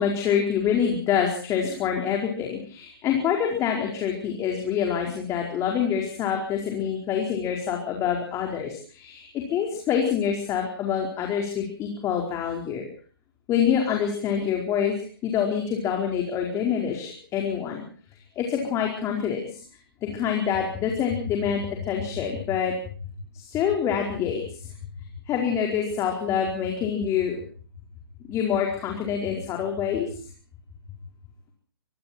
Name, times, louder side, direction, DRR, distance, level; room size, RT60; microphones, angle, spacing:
voice 1, 0.0-12.9 13.5-17.8 18.4-19.6 20.0-22.7 23.3-24.7 25.3-27.4 28.3-30.1, left 8 dB, 25° left, 1 dB, 4.6 m, -26 dB
25.0 x 23.5 x 4.5 m, 0.43 s
figure-of-eight pair, 130°, 13 cm